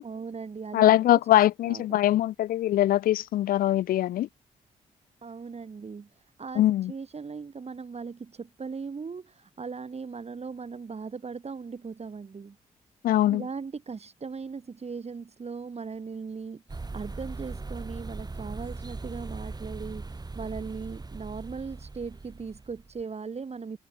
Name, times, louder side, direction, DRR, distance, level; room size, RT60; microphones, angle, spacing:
voice 1, 0.0-1.2 1.6-2.0 5.2-6.1 6.4-6.6 6.9-12.6 13.3-23.8, right 5 dB, 45° right, 3.7 m, -38 dB
voice 2, 0.7-4.3 6.6-6.9 13.0-13.4, left 13 dB, 75° left, 0.7 m, -22 dB
sound 1, 16.7-23.0, right 3 dB, 25° right, 1.8 m, -39 dB
hypercardioid pair, 45°, 15 cm